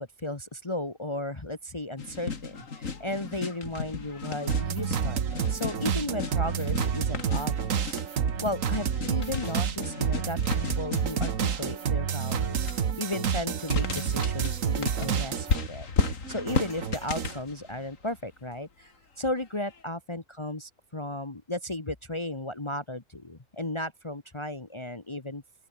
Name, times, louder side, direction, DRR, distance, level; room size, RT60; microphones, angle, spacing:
voice 1, 0.0-7.9 8.4-25.4, left 1 dB, 20° left, 1.6 m, -35 dB
sound 1, 2.0-11.7 12.4-12.8 13.6-18.2 19.7-19.8, left 5 dB, 80° left, 2.6 m, -34 dB
sound 2, 4.5-15.7 16.0-17.4, right 7 dB, 85° right, 1.6 m, -29 dB
open air
omnidirectional pair, 1.3 m